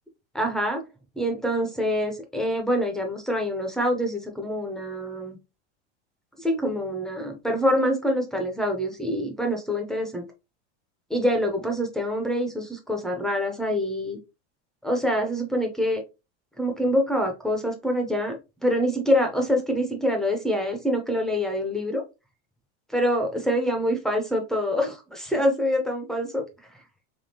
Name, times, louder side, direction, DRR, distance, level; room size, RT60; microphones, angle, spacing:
voice 1, 0.3-0.8 1.2-5.4 6.4-10.3 11.1-14.2 14.8-16.0 16.6-22.0 22.9-26.4, equal, ahead, 2 dB, 0.5 m, -25 dB
3.6 x 3.2 x 2.6 m, 0.27 s
supercardioid pair, 145°, 35 cm